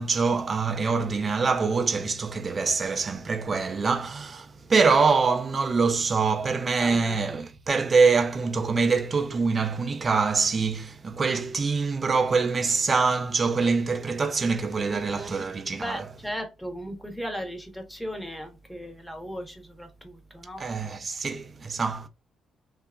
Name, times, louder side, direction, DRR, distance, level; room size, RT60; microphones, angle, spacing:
voice 1, 0.0-16.1 20.6-22.1, right 4 dB, 35° right, 0.4 m, -24 dB
voice 2, 6.8-7.2 14.9-15.3 15.8-20.6, equal, ahead, 0.7 m, -36 dB
2.7 x 2.4 x 2.2 m
cardioid pair, 90°, 0 cm